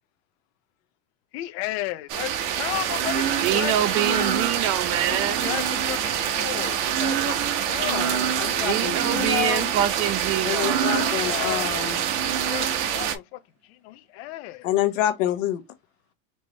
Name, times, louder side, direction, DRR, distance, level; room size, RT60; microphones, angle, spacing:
voice 1, 1.3-4.5 5.1-8.1 10.7-11.9 12.2-14.7, left 15 dB, 60° left, 0.6 m, -34 dB
sound 1, 2.1-13.2, right 9 dB, 65° right, 1.0 m, -25 dB
voice 2, 3.4-5.5 8.6-10.8, right 11 dB, 40° right, 0.6 m, -25 dB
voice 3, 7.8-9.7 10.4-12.0 14.6-15.6, left 12 dB, 75° left, 1.2 m, -27 dB
4.5 x 2.9 x 2.8 m
supercardioid pair, 155°, 38 cm